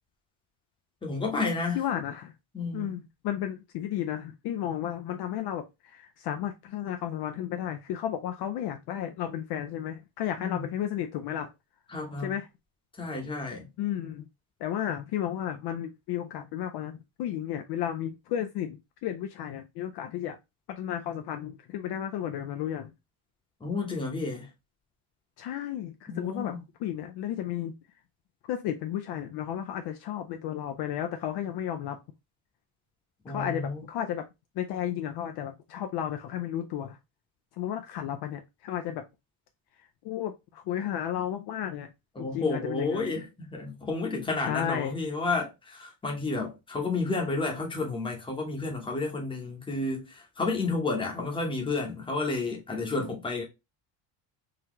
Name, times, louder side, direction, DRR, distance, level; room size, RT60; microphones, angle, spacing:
voice 1, 1.0-1.8 2.5-3.0 10.4-10.7 11.9-12.4 13.0-13.7 23.6-24.5 26.1-26.6 33.2-33.8 42.2-53.4, left 3 dB, 10° left, 0.8 m, -31 dB
voice 2, 1.7-2.3 2.7-11.5 12.2-12.5 13.8-14.2 14.6-20.4 20.7-22.9 25.4-26.5 26.8-27.8 28.5-32.0 33.3-34.3 34.6-37.0 37.6-39.0 40.0-41.9 42.2-43.1 44.5-44.9, left 10 dB, 55° left, 0.5 m, -33 dB
3.9 x 2.8 x 3.0 m
cardioid pair, 175°, 48 cm